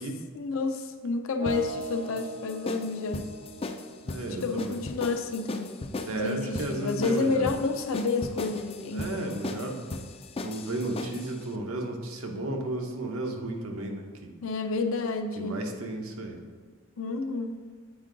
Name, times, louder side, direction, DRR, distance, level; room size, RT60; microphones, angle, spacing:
voice 1, 0.3-3.3 4.4-5.8 6.2-9.1 14.4-15.6 17.0-17.5, left 3 dB, 75° left, 6 dB, 0.6 m, -30 dB
sound 1, 1.4-5.3, right 1 dB, 30° right, 0.5 m, -40 dB
sound 2, 1.5-11.3, left 2 dB, 25° left, 0.3 m, -37 dB
voice 2, 4.0-4.8 6.1-7.5 8.9-9.8 10.4-14.3 15.4-16.4, right 1 dB, 85° right, 2 dB, 0.9 m, -33 dB
7.9 x 4.5 x 3.8 m, 1.5 s
head